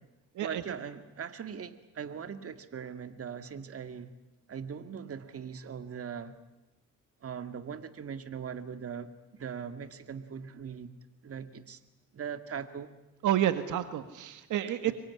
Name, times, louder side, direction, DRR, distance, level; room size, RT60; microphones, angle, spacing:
voice 1, 0.4-4.1 4.5-6.4 7.2-9.1 9.4-10.9 11.2-11.8 12.1-12.9 14.9-15.0, right 7 dB, 50° right, 9 dB, 2.1 m, -40 dB
voice 2, 13.2-14.9, right 12 dB, 80° right, 10 dB, 1.8 m, -29 dB
26.0 x 23.0 x 9.8 m, 1.0 s
cardioid pair, 90°, 30 cm